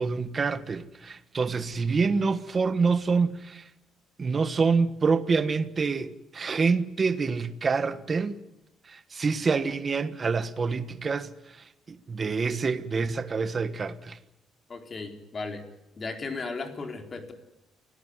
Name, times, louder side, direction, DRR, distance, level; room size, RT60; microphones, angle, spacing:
voice 1, 0.0-3.7 4.2-8.4 8.8-14.2, right 4 dB, 25° right, 1.4 m, -27 dB
voice 2, 14.7-15.6 16.0-17.3, left 3 dB, 25° left, 4.1 m, -35 dB
29.0 x 18.0 x 9.8 m
cardioid pair, 160°, 0 cm